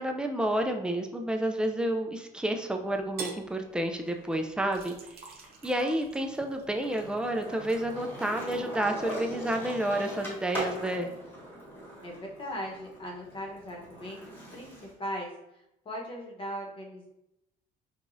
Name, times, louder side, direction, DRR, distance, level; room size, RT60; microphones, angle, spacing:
voice 1, 0.0-4.9 5.3-11.1, right 1 dB, 5° right, 4 dB, 0.4 m, -30 dB
Skateboard, 2.8-4.4 4.7-14.9, equal, 10° left, 1.2 m, -42 dB
sound 1, 3.2-3.5 4.7-9.0 9.3-10.7, right 5 dB, 65° right, 0.7 m, -47 dB
voice 2, 12.0-17.1, equal, 30° left, -1 dB, 1.0 m, -39 dB
4.8 x 2.4 x 2.6 m, 0.86 s
cardioid pair, 110°, 17 cm